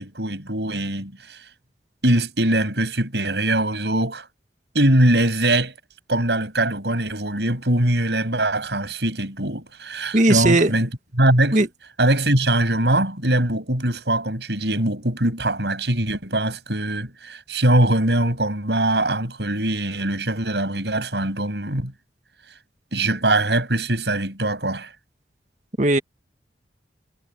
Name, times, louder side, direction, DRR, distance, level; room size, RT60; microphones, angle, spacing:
voice 1, 0.0-1.5 2.0-4.3 4.7-5.7 6.1-11.6 12.0-21.9 22.9-24.9, right 1 dB, 70° right, 7.4 m, -22 dB
voice 2, 10.1-10.7 11.5-11.7 25.8-26.0, right 2 dB, 45° right, 1.7 m, -17 dB
head